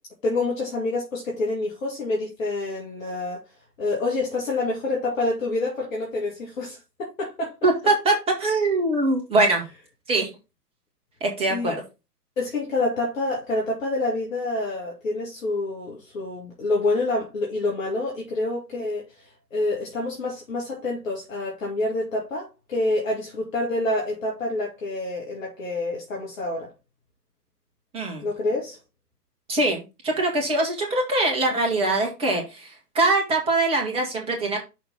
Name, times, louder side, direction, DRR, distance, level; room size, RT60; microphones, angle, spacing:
voice 1, 0.2-3.4 3.8-7.5 11.5-11.7 12.4-26.7 28.2-28.8, left 2 dB, 50° left, 2.6 m, -27 dB
voice 2, 7.6-9.6 10.1-10.3 11.2-11.8 27.9-28.3 29.5-34.6, right 2 dB, 10° right, 1.7 m, -23 dB
6.3 x 4.4 x 5.4 m
figure-of-eight pair, 120°, 49 cm